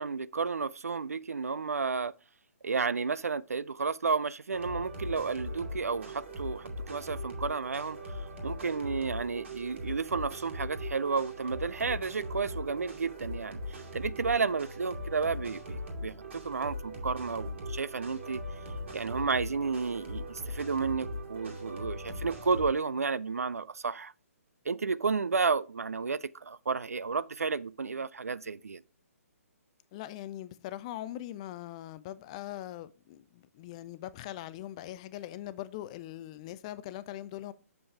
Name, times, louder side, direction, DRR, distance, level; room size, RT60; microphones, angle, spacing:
voice 1, 0.0-2.1 2.6-8.0 8.4-18.4 18.9-24.1 24.7-28.8, right 5 dB, 70° right, 0.4 m, -32 dB
sound 1, 4.5-22.7, equal, 55° right, 2.3 m, -40 dB
voice 2, 29.9-37.5, left 13 dB, 25° left, 0.4 m, -41 dB
6.8 x 5.3 x 3.3 m
figure-of-eight pair, 130°, 8 cm